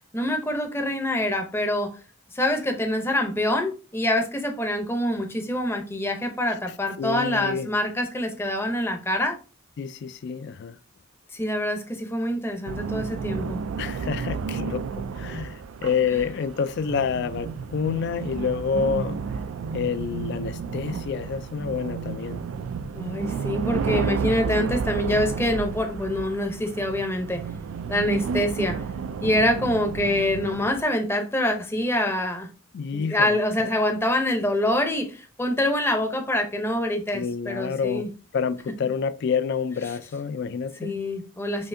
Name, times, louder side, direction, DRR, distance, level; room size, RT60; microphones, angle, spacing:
voice 1, 0.1-1.9 2.3-9.4 11.3-13.6 16.1-16.2 22.9-27.4 27.9-28.8 29.2-32.5 32.9-38.1 40.8-41.7, left 1 dB, 10° left, 0.6 m, -25 dB
voice 2, 7.0-7.7 9.8-10.8 13.8-19.2 19.7-22.4 23.9-24.1 32.7-33.4 37.1-41.1, left 6 dB, 55° left, 0.3 m, -28 dB
sound 1, 12.7-30.8, right 5 dB, 75° right, 0.3 m, -31 dB
5.5 x 2.6 x 2.6 m
head